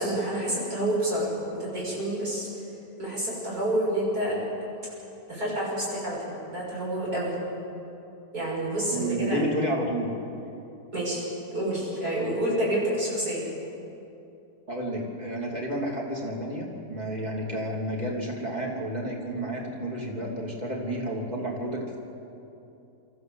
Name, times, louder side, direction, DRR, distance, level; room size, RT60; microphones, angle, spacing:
voice 1, 0.0-2.5 3.0-4.4 5.3-7.3 8.3-9.4 10.9-11.2 11.5-13.4, right 1 dB, 75° right, -6 dB, 7.2 m, -28 dB
voice 2, 8.9-10.1 14.7-22.0, right 1 dB, 25° right, -2 dB, 3.2 m, -31 dB
24.5 x 14.0 x 8.0 m, 2.8 s
omnidirectional pair, 1.6 m